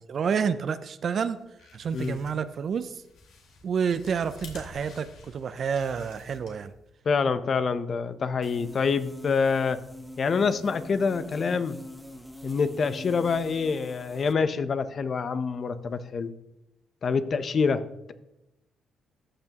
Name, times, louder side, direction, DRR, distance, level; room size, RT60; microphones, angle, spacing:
voice 1, 0.0-1.4 1.7-3.0 3.6-6.7, right 6 dB, 55° right, 12 dB, 0.5 m, -29 dB
sound 1, 1.3-6.9, left 2 dB, 80° left, 2.9 m, -50 dB
voice 2, 7.0-9.8 10.2-11.8 12.4-16.3 17.0-18.1, left 5 dB, 45° left, 12 dB, 0.7 m, -26 dB
sound 2, 8.4-14.3, left 1 dB, ahead, 1.0 m, -44 dB
14.0 x 6.8 x 2.9 m, 0.90 s
cardioid pair, 90°, 0 cm